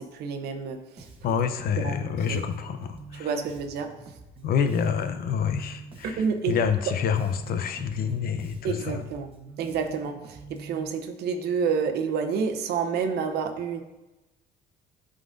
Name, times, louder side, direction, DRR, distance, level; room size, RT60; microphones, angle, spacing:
voice 1, 0.0-1.1 1.8-2.4 3.1-3.9 5.1-5.2 6.0-6.9 8.6-9.3 9.6-13.8, right 5 dB, 75° right, 6 dB, 0.8 m, -29 dB
Bass guitar, 1.0-10.9, right 3 dB, 30° right, 1.1 m, -46 dB
voice 2, 1.2-3.3 4.4-9.0, left 7 dB, 60° left, 8 dB, 0.7 m, -27 dB
11.0 x 3.9 x 2.6 m, 1.0 s
cardioid pair, 110°, 17 cm